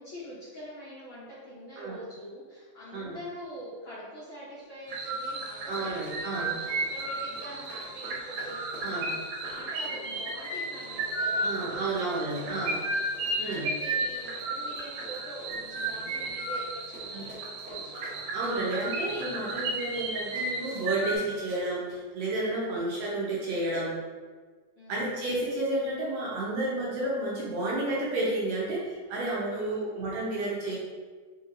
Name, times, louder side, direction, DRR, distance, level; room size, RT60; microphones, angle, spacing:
voice 1, 0.0-18.0 24.8-25.1 29.5-29.9, equal, 70° left, -10 dB, 1.1 m, -44 dB
Run, 4.8-22.0, left 1 dB, 45° right, 1.0 m, -49 dB
sound 1, 4.9-21.2, right 2 dB, 90° right, 2.1 m, -34 dB
voice 2, 5.7-6.5 8.8-9.1 11.3-12.8 13.4-13.7 17.1-17.3 18.3-24.0 24.9-30.8, right 2 dB, 75° right, -5 dB, 1.8 m, -31 dB
4.5 x 3.0 x 2.4 m, 1.5 s
omnidirectional pair, 3.4 m